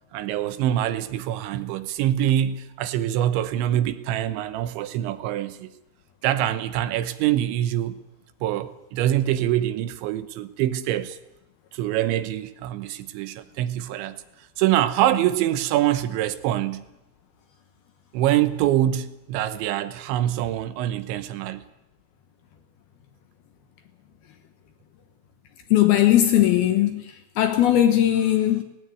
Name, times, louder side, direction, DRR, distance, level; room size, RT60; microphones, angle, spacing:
voice 1, 0.1-5.7 6.2-8.0 8.4-11.2 11.7-14.2 14.6-16.9 18.1-21.7, right 12 dB, 80° right, 3.2 m, -24 dB
voice 2, 25.7-28.6, left 12 dB, 70° left, 2.5 m, -19 dB
18.0 x 16.5 x 9.4 m
omnidirectional pair, 5.4 m